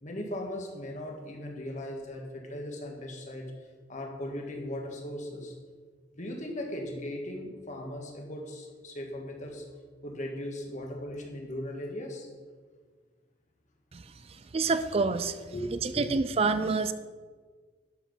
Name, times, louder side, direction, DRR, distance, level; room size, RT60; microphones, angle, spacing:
voice 1, 0.0-3.5 3.9-5.6 6.2-9.7 10.0-12.3 14.3-14.4 15.2-16.1, left 1 dB, 45° left, 2 dB, 1.7 m, -38 dB
voice 2, 14.5-15.4 15.8-16.9, right 4 dB, 35° right, 11 dB, 0.4 m, -27 dB
12.5 x 5.8 x 5.6 m, 1.5 s
head